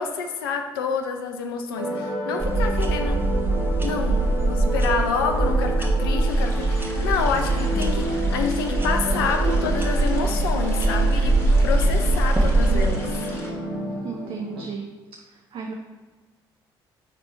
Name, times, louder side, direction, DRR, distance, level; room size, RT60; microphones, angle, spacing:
voice 1, 0.0-3.2 3.8-13.1, left 5 dB, 75° left, 5 dB, 0.6 m, -28 dB
sound 1, 1.8-14.6, right 1 dB, 90° right, 0.8 m, -30 dB
sound 2, 2.4-12.9, right 2 dB, 15° right, 1.2 m, -22 dB
sound 3, 6.2-13.5, left 1 dB, 20° left, 1.7 m, -42 dB
voice 2, 14.0-14.9 15.3-15.7, right 5 dB, 45° right, 2 dB, 0.6 m, -34 dB
8.9 x 3.4 x 4.1 m, 1.3 s
figure-of-eight pair, 45°, 12 cm